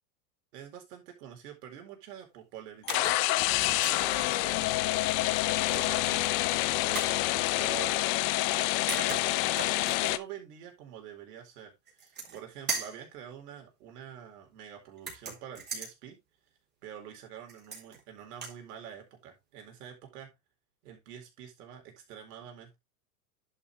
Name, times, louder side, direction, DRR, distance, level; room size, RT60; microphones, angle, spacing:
voice 1, 0.5-4.8 5.7-6.2 6.8-8.2 8.5-11.7 12.0-16.2 16.8-20.3 20.8-22.8, right 9 dB, 75° right, 4.2 m, -46 dB
sound 1, 2.9-10.2, left 17 dB, 45° left, 0.8 m, -27 dB
sound 2, 2.9-3.2 3.6-4.0 5.7-6.3 6.9-7.2 8.5-8.6 8.9-10.1 11.9-12.4 12.7-13.0 15.0-15.9 17.5-18.0 18.3-18.6, right 4 dB, 20° right, 3.7 m, -38 dB
11.0 x 5.7 x 3.3 m
supercardioid pair, 125°, 47 cm